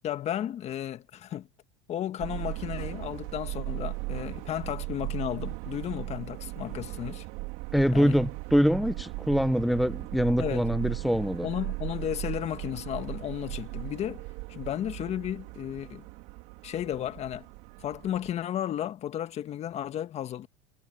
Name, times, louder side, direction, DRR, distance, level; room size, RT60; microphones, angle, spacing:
voice 1, 0.0-1.5 1.9-7.2 7.9-8.2 10.4-10.7 11.4-14.2 14.5-16.0 16.6-17.5 17.8-20.5, left 11 dB, 40° left, 1.6 m, -33 dB
Subway metro underground, 2.2-18.3, right 24 dB, 70° right, 3.4 m, -37 dB
voice 2, 7.7-11.5, equal, ahead, 0.7 m, -24 dB
supercardioid pair, 115°, 17 cm